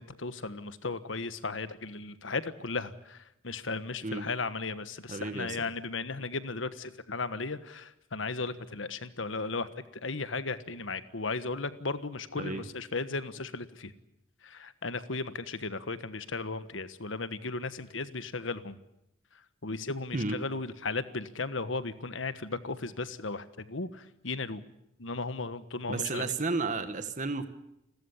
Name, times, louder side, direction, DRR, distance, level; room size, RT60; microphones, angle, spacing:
voice 1, 0.0-9.7 10.0-13.9 14.4-18.8 19.6-24.6 25.0-26.3, left 3 dB, 75° left, 13 dB, 1.4 m, -36 dB
voice 2, 5.1-5.6 12.4-12.6 20.1-20.4 25.9-27.5, right 3 dB, 40° right, 10 dB, 1.5 m, -32 dB
30.0 x 14.0 x 9.9 m, 0.81 s
head